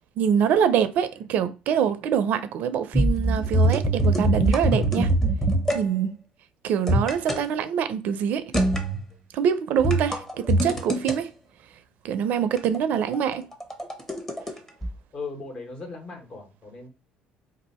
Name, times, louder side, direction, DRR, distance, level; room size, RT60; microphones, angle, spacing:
voice 1, 0.2-5.1 5.7-6.2 6.6-8.4 9.3-11.3 12.0-13.5, right 8 dB, 65° right, 0.5 m, -24 dB
sound 1, 2.9-5.8 6.9-7.4 8.5-9.0 9.8-11.1 12.6-14.5 14.8-14.9, right 1 dB, 15° left, 1.0 m, -23 dB
voice 2, 15.1-16.9, left 4 dB, 45° left, 1.4 m, -37 dB
2.7 x 2.5 x 4.2 m
supercardioid pair, 85°, 3 cm